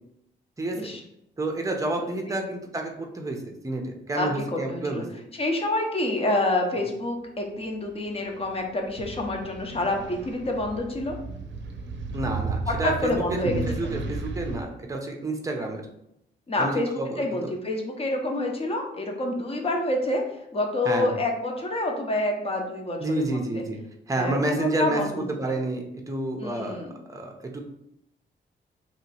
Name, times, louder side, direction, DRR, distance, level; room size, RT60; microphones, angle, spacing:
voice 1, 1.4-5.1 12.1-13.4 13.7-15.8 16.6-17.5 20.8-21.1 23.0-23.8 24.1-25.1 25.4-26.8 27.1-27.6, right 2 dB, 15° right, 2 dB, 0.6 m, -29 dB
voice 2, 4.1-5.0 5.3-11.2 12.7-13.9 16.5-23.4 24.1-25.5 26.4-27.0, left 2 dB, 30° left, 2 dB, 0.8 m, -28 dB
sound 1, 8.1-14.6, right 3 dB, 75° right, 0.6 m, -34 dB
3.1 x 2.8 x 4.2 m, 0.79 s
wide cardioid pair, 135°, 19 cm